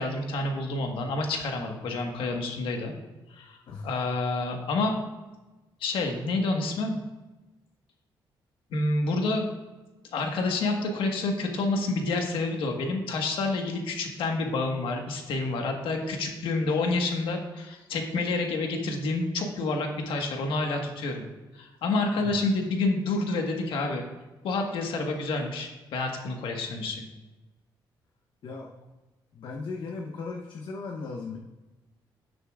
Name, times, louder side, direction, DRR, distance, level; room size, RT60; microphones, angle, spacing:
voice 1, 0.0-2.9 3.3-3.6 3.8-5.0 5.8-7.0 8.7-9.4 10.1-21.2 21.5-24.0 24.4-27.0, left 3 dB, 85° left, 2 dB, 1.5 m, -28 dB
voice 2, 29.3-31.4, left 4 dB, 60° left, 0 dB, 0.9 m, -37 dB
17.0 x 6.8 x 2.4 m, 1.1 s
cardioid pair, 130°, 9 cm